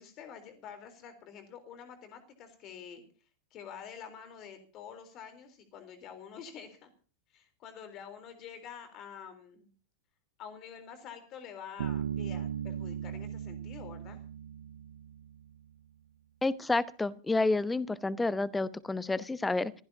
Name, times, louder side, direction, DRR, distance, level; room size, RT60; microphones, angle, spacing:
voice 1, 0.0-3.0 3.5-6.9 7.3-9.7 10.4-14.2, left 7 dB, 35° left, 8 dB, 3.7 m, -47 dB
Bass guitar, 11.8-15.5, right 9 dB, 60° right, 0.7 m, -37 dB
voice 2, 16.4-19.7, left 3 dB, 10° left, 19 dB, 0.8 m, -29 dB
27.0 x 16.0 x 2.8 m, 0.39 s
figure-of-eight pair, 90°, 0 cm